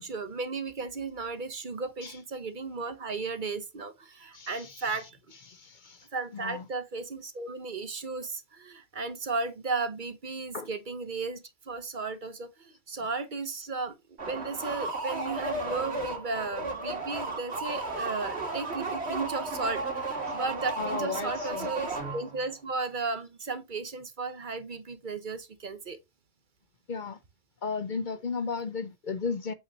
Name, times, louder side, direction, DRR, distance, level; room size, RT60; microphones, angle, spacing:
voice 1, 0.0-5.2 6.1-14.0 14.3-26.0, right 4 dB, 50° right, 1.1 m, -35 dB
voice 2, 4.3-4.8 5.5-6.1 6.3-6.6 10.5-10.7 20.8-21.7 26.9-27.2 27.6-29.5, left 5 dB, 50° left, 0.8 m, -35 dB
sound 1, 14.2-22.5, right 2 dB, 85° right, 2.2 m, -34 dB
8.0 x 5.6 x 2.9 m
omnidirectional pair, 1.1 m